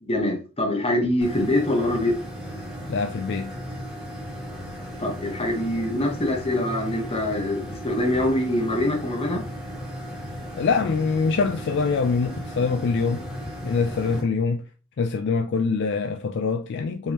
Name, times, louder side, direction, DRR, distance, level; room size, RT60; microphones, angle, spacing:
voice 1, 0.0-2.2 5.0-9.4, left 1 dB, 25° left, 1.0 m, -24 dB
sound 1, 1.2-14.2, equal, ahead, 1.6 m, -36 dB
voice 2, 2.9-3.5 10.6-13.3 13.6-14.6 15.0-17.1, left 4 dB, 55° left, 0.4 m, -24 dB
4.5 x 3.4 x 2.9 m
head